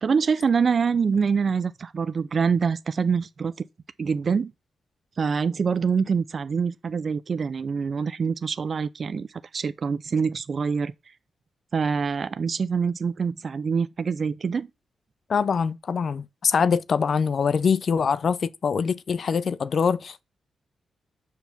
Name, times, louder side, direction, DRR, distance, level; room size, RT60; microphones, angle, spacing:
voice 1, 0.0-3.5 4.0-4.5 5.2-9.3 9.5-10.9 11.7-14.7, right 5 dB, 40° right, 0.4 m, -25 dB
voice 2, 15.3-20.2, left 6 dB, 45° left, 0.4 m, -24 dB
7.8 x 4.6 x 7.0 m
wide cardioid pair, 155°, 0 cm